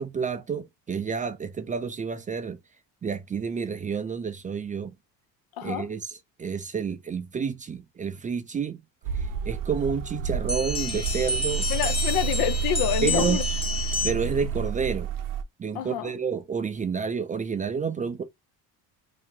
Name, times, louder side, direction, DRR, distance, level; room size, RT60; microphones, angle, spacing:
voice 1, 0.0-2.6 3.0-4.9 5.6-8.8 9.1-11.7 13.0-13.4 14.0-15.1 15.6-18.2, right 6 dB, 20° right, 0.3 m, -30 dB
voice 2, 5.6-5.9 11.7-13.4 15.7-16.1, left 12 dB, 75° left, 0.6 m, -27 dB
sound 1, 9.0-15.4, right 6 dB, 60° right, 0.6 m, -30 dB
sound 2, 10.5-14.4, left 3 dB, 15° left, 0.8 m, -30 dB
2.8 x 2.5 x 3.7 m
cardioid pair, 100°, 38 cm